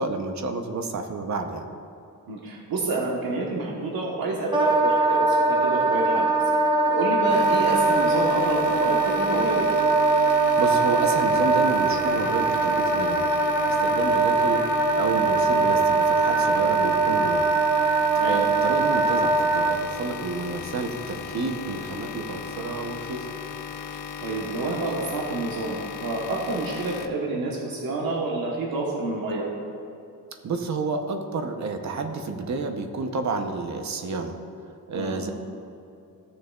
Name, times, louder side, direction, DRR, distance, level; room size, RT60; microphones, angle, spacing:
voice 1, 0.0-1.6 10.6-13.2 13.6-14.7 14.9-17.4 18.2-23.3 30.4-34.3 34.9-35.3, right 3 dB, 50° right, 6 dB, 0.7 m, -30 dB
voice 2, 2.3-6.4 6.9-9.7 18.1-18.4 24.2-29.5 34.9-35.2, right 2 dB, 70° right, -2 dB, 1.1 m, -28 dB
Wind instrument woodwind instrument, 4.5-19.8, right 3 dB, 10° right, 0.7 m, -22 dB
sound 1, 7.3-27.1, left 7 dB, 55° left, 0.5 m, -36 dB
15.0 x 6.5 x 2.3 m, 2.8 s
wide cardioid pair, 175°, 37 cm